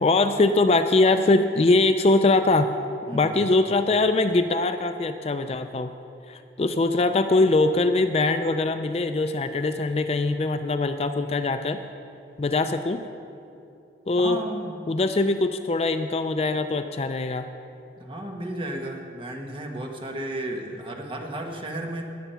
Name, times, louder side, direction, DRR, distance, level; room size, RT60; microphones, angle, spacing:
voice 1, 0.0-2.7 3.1-5.9 6.3-11.8 12.4-13.0 14.1-14.4 14.9-17.5, left 2 dB, 35° left, 9 dB, 0.4 m, -22 dB
voice 2, 14.2-15.1 18.0-22.1, right 1 dB, 30° right, 2 dB, 1.2 m, -34 dB
19.0 x 7.1 x 5.7 m, 2.7 s
head